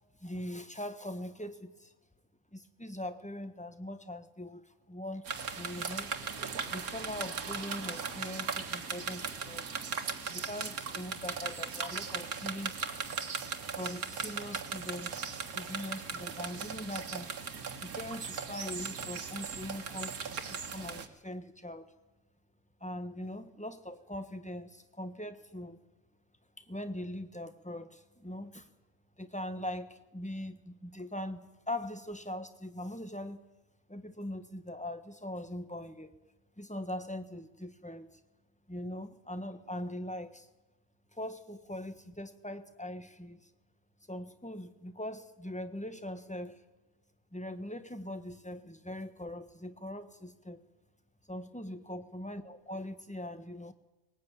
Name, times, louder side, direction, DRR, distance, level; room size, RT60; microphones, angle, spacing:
voice 1, 0.2-1.9 2.5-6.1 6.7-9.7 10.3-12.8 13.7-17.3 17.8-21.9 22.8-25.8 26.6-28.7 29.2-33.4 33.9-36.1 36.6-38.2 38.7-40.5 41.1-43.5 44.1-46.6 47.3-50.6 51.3-53.7, left 1 dB, 5° left, 10 dB, 1.2 m, -41 dB
sound 1, 5.2-21.1, right 5 dB, 85° right, 2.0 m, -38 dB
21.5 x 19.0 x 9.3 m, 1.1 s
omnidirectional pair, 1.5 m